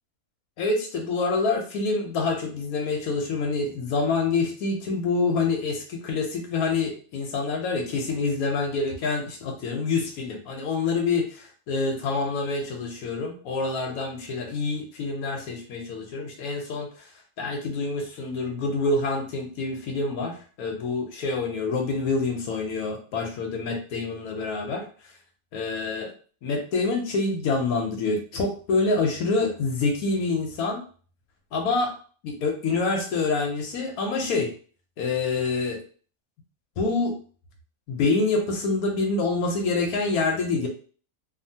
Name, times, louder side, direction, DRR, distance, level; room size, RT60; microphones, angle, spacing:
voice 1, 0.6-16.9 17.4-24.8 25.5-26.1 26.4-30.8 31.5-31.9 32.2-34.5 35.0-35.8 36.8-37.1 37.9-40.7, left 3 dB, 85° left, 2 dB, 1.1 m, -26 dB
2.8 x 2.3 x 2.7 m, 0.41 s
omnidirectional pair, 1.5 m